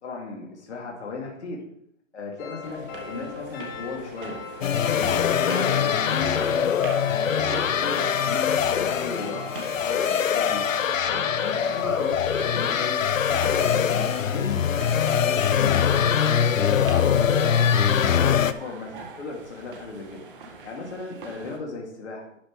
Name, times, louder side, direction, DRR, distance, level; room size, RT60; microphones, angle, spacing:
voice 1, 0.0-1.7 2.1-4.4 4.9-6.7 7.2-10.6 11.1-17.4 17.8-20.2 20.6-22.4, left 3 dB, 60° left, -1 dB, 2.5 m, -36 dB
sound 1, 2.4-11.1, left 5 dB, 15° left, 0.7 m, -40 dB
sound 2, 2.6-21.6, right 4 dB, 40° right, 1.7 m, -43 dB
sound 3, 4.6-18.5, left 8 dB, 80° left, 0.7 m, -23 dB
12.0 x 5.3 x 4.6 m, 0.71 s
hypercardioid pair, 150°, 38 cm